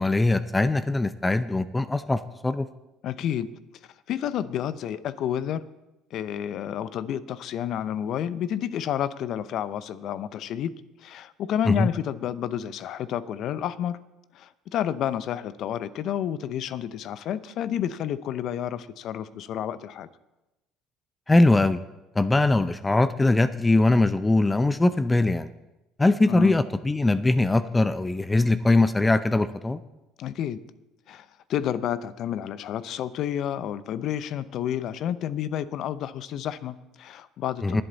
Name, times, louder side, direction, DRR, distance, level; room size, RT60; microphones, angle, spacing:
voice 1, 0.0-2.7 11.7-11.9 21.3-21.8 22.2-25.5 26.0-29.8 37.6-37.8, left 2 dB, 15° left, 13 dB, 0.5 m, -21 dB
voice 2, 3.0-3.5 4.1-5.6 6.1-14.0 14.3-20.1 26.3-26.6 30.2-30.6 31.1-37.8, left 10 dB, 60° left, 15 dB, 0.7 m, -30 dB
21.5 x 7.9 x 4.0 m, 0.97 s
supercardioid pair, 80°, 0 cm